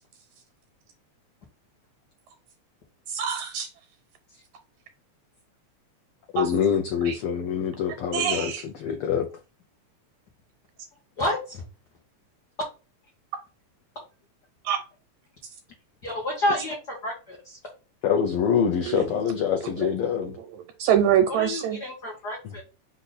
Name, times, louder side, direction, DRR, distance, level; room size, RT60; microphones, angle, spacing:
voice 1, 3.1-3.7 6.4-6.5 7.1-7.2 8.1-8.6 14.7-14.8 18.9-19.0 20.8-21.8, right 9 dB, 85° right, 2.0 m, -23 dB
voice 2, 6.3-9.3 18.0-20.4 22.4-22.5, left 7 dB, 90° left, 1.2 m, -25 dB
voice 3, 11.2-11.6 16.0-17.6 21.3-22.6, left 1 dB, 55° left, 1.2 m, -29 dB
4.9 x 2.7 x 3.9 m
omnidirectional pair, 3.4 m